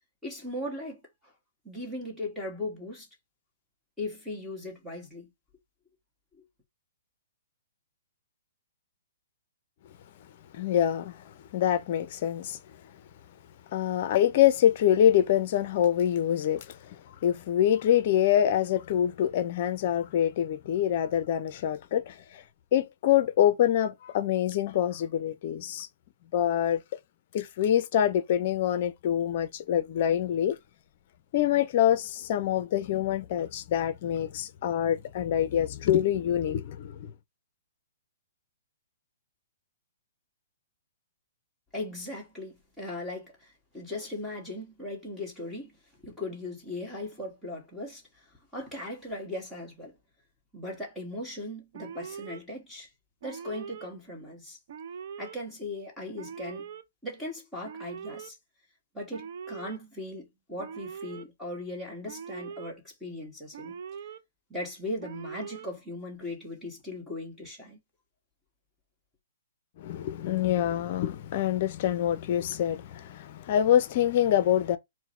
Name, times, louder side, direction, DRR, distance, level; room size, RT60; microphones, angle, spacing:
voice 1, 0.2-1.0 1.6-3.1 4.0-5.3 6.4-6.5 41.7-45.8 46.0-48.0 48.5-49.9 50.5-52.9 53.2-54.6 55.2-56.7 57.0-58.4 58.9-63.8 64.5-67.8, left 1 dB, ahead, 1.4 m, -38 dB
voice 2, 10.5-11.2 11.5-12.6 13.7-16.7 17.2-22.1 22.7-25.9 26.3-26.8 27.3-30.6 31.3-37.1 69.8-74.8, left 10 dB, 45° left, 0.6 m, -25 dB
Alarm, 51.7-52.4 53.2-53.9 54.7-55.3 56.2-56.8 57.6-58.3 59.1-59.8 60.6-61.2 62.0-62.7 63.5-64.2 65.0-65.7, right 7 dB, 50° right, 0.6 m, -41 dB
4.6 x 2.2 x 4.3 m
hypercardioid pair, 160°, 0 cm